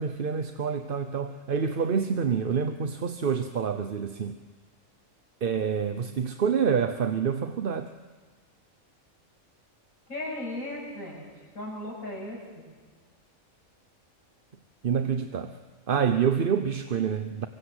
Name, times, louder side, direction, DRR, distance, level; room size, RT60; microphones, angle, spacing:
voice 1, 0.0-4.4 5.4-7.9 14.8-15.6 15.9-17.5, right 6 dB, 45° right, 9 dB, 1.0 m, -27 dB
voice 2, 10.1-11.2 11.5-12.6, left 1 dB, 85° left, -2 dB, 8.3 m, -36 dB
24.5 x 24.0 x 8.0 m, 1.4 s
omnidirectional pair, 1.4 m